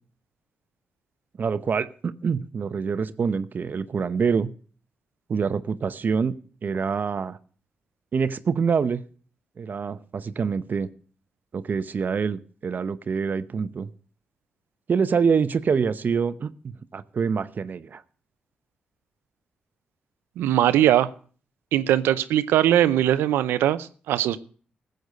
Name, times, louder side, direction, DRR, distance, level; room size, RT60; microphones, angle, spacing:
voice 1, 1.4-4.5 5.3-6.3 6.6-7.4 8.1-9.0 9.6-10.9 11.5-13.9 14.9-16.5 16.9-18.0, right 6 dB, 55° right, 13 dB, 0.8 m, -25 dB
voice 2, 20.4-21.1 21.7-24.4, right 12 dB, 90° right, 14 dB, 0.6 m, -20 dB
14.5 x 8.0 x 6.7 m, 0.43 s
supercardioid pair, 50°, 4 cm